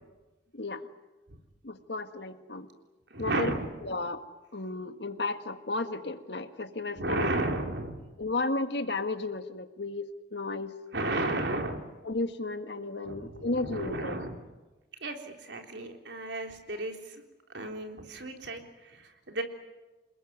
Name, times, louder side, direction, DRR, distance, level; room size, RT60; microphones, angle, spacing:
voice 1, 0.5-0.9 1.6-2.7 3.2-3.5 3.8-4.3 4.5-7.3 8.2-10.8 12.0-14.2, left 3 dB, 70° left, 8 dB, 1.8 m, -33 dB
voice 2, 3.1-3.7 7.0-8.0 10.9-11.8 13.1-14.4 15.0-17.2 17.5-19.4, right 2 dB, 80° right, 4 dB, 3.6 m, -33 dB
28.0 x 20.5 x 9.6 m, 1.1 s
head